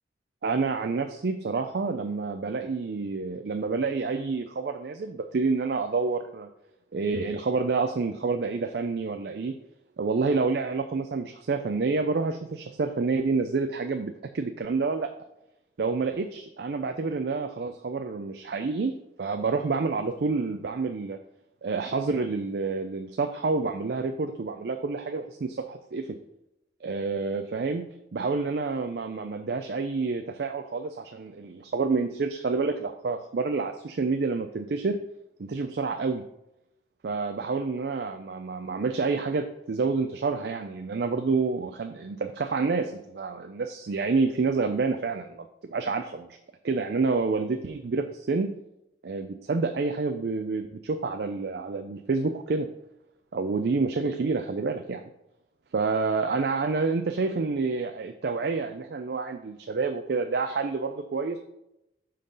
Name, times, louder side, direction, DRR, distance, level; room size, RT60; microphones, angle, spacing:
voice 1, 0.4-6.5 6.9-9.6 10.0-15.1 15.8-18.9 19.2-21.2 21.6-26.2 26.8-27.9 28.1-35.0 35.4-36.2 37.0-46.4 46.6-48.5 49.0-52.7 53.3-55.1 55.7-61.4, right 4 dB, 65° right, 7 dB, 0.4 m, -28 dB
6.4 x 3.8 x 5.3 m, 0.88 s
head